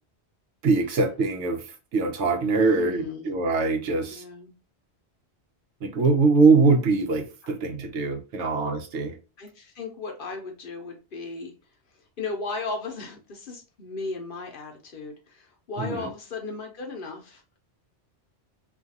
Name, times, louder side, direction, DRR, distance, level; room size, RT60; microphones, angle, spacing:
voice 1, 0.6-1.6 1.9-4.2 5.8-9.1 15.8-16.1, right 4 dB, 85° right, 1.0 m, -22 dB
voice 2, 2.6-3.3 4.1-4.5 7.4-7.5 8.4-8.5 9.4-11.5 12.2-17.4, left 3 dB, 55° left, 0.8 m, -36 dB
2.5 x 2.4 x 2.7 m
omnidirectional pair, 1.2 m